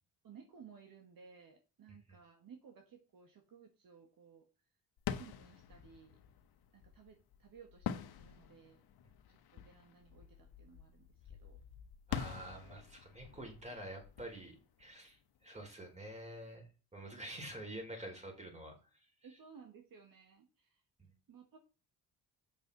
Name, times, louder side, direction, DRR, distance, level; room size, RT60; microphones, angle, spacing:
voice 1, 0.2-4.5 5.1-6.2 6.7-8.8 9.3-11.6 12.3-12.7 13.7-13.8 15.7-15.8 17.2-17.3 19.2-20.8 21.3-21.6, right 6 dB, 60° right, 4 dB, 1.8 m, -58 dB
sound 1, 5.0-15.6, left 9 dB, 70° left, 1.2 m, -46 dB
voice 2, 12.1-18.8 21.0-21.1, right 1 dB, 15° right, 2 dB, 3.9 m, -48 dB
7.9 x 6.9 x 4.0 m, 0.33 s
cardioid pair, 105°, 39 cm